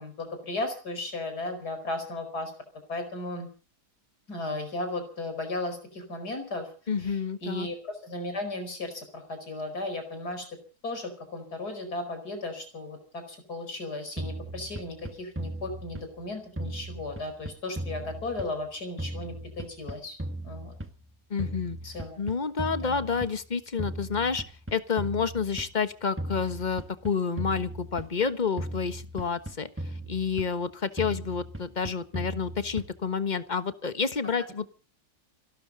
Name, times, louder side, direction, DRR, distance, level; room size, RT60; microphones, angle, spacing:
voice 1, 0.0-2.5 2.9-3.5 4.3-6.7 7.0-10.5 10.8-20.2 20.4-20.7 21.8-22.2 22.8-23.0, left 2 dB, 85° left, 7 dB, 5.4 m, -35 dB
voice 2, 6.9-7.7 21.3-21.8 22.2-24.4 24.7-29.7 30.1-34.7, left 5 dB, 30° left, 12 dB, 1.3 m, -29 dB
sound 1, 14.2-16.3 16.6-18.7 19.0-21.1 21.4-23.5 23.8-25.8 26.2-28.3 28.6-30.7 31.0-33.1, right 1 dB, 10° right, 1.3 m, -37 dB
28.5 x 12.5 x 4.0 m, 0.38 s
omnidirectional pair, 1.7 m